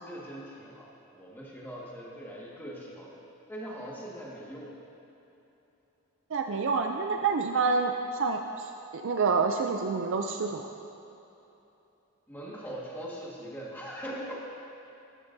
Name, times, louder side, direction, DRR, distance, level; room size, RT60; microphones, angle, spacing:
voice 1, 0.0-4.9 12.3-14.5, equal, 10° left, -5 dB, 1.7 m, -41 dB
voice 2, 6.3-10.7, right 4 dB, 60° right, 4 dB, 0.4 m, -28 dB
13.5 x 12.5 x 2.7 m, 3.0 s
head